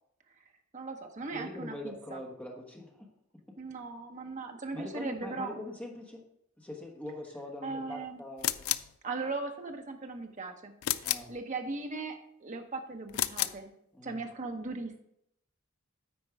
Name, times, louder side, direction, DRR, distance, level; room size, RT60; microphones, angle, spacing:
voice 1, 0.7-2.2 3.6-5.5 7.6-8.2 9.0-13.7 14.0-15.0, right 3 dB, 35° right, 4 dB, 0.9 m, -38 dB
voice 2, 1.3-3.1 3.5-3.6 4.7-6.2 6.6-8.8 11.0-11.3 13.9-14.2, left 1 dB, 5° left, 0 dB, 1.2 m, -43 dB
sound 1, 8.4-9.0 10.8-11.4 13.1-13.6, left 14 dB, 80° left, 0.4 m, -31 dB
9.4 x 4.5 x 4.7 m, 0.77 s
head